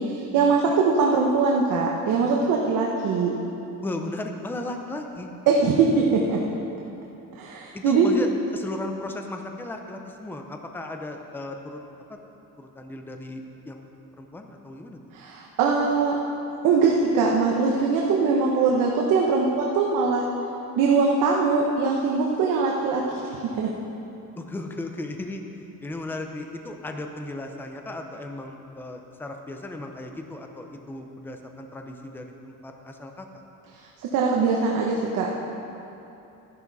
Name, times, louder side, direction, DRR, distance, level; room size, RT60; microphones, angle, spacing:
voice 1, 0.0-3.3 5.5-6.4 7.4-8.1 15.1-16.2 16.6-20.2 20.8-23.7 34.1-35.3, right 4 dB, 65° right, -1 dB, 1.1 m, -22 dB
voice 2, 3.8-5.3 7.7-11.8 12.1-12.2 12.6-15.0 24.4-25.4 25.8-33.4, left 2 dB, 5° left, 4 dB, 0.6 m, -36 dB
13.0 x 11.0 x 4.1 m, 2.9 s
cardioid pair, 155°, 34 cm